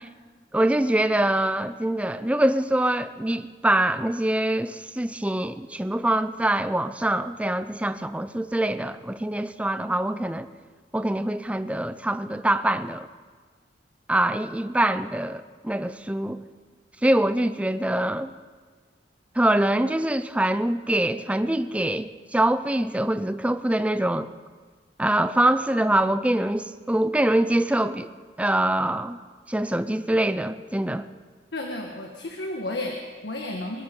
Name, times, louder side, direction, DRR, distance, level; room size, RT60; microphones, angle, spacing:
voice 1, 0.5-10.5 10.9-13.1 14.1-16.4 17.0-18.3 19.4-24.3 25.0-28.1 28.4-29.2 29.5-31.1, right 1 dB, 5° right, 11 dB, 0.4 m, -24 dB
voice 2, 31.5-33.8, left 1 dB, 70° left, 2 dB, 1.4 m, -32 dB
22.0 x 12.5 x 5.2 m, 1.5 s
head